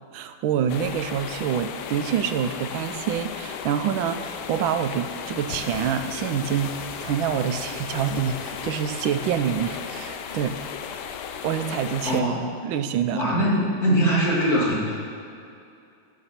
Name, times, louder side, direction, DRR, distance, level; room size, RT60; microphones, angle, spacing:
voice 1, 0.1-10.6 11.4-12.2 12.6-13.2, right 8 dB, 75° right, 9 dB, 1.4 m, -26 dB
sound 1, 0.7-12.2, left 7 dB, 70° left, 1.0 m, -35 dB
voice 2, 12.0-12.5 13.1-14.9, right 1 dB, 45° left, -5 dB, 2.8 m, -22 dB
14.5 x 7.1 x 4.3 m, 2.5 s
omnidirectional pair, 2.3 m